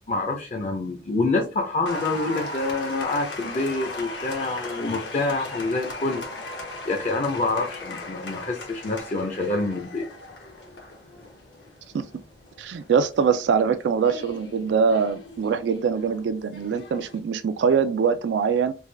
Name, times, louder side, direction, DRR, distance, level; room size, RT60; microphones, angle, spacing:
voice 1, 0.1-10.1, left 2 dB, 40° left, 0.5 m, -27 dB
Applause, 1.9-17.2, left 2 dB, 80° left, 1.0 m, -38 dB
voice 2, 12.6-18.7, right 6 dB, 80° right, 0.3 m, -23 dB
3.4 x 2.3 x 3.2 m
head